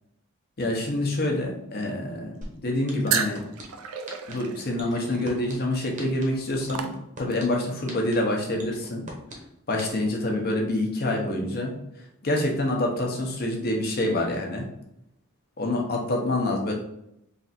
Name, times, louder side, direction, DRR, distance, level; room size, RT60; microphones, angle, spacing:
voice 1, 0.6-3.4 4.3-9.1 9.7-14.6 15.6-16.7, left 1 dB, 45° left, 0 dB, 0.7 m, -27 dB
sound 1, 2.4-2.5 2.9-3.6 4.1-4.3 4.8-5.5 6.0-6.2 6.7-7.4 7.9-8.1 8.6-9.4 9.8-9.9, right 2 dB, 35° right, 0.8 m, -40 dB
sound 2, 3.1-7.5, right 7 dB, 70° right, 0.4 m, -33 dB
3.3 x 2.5 x 4.1 m, 0.80 s
head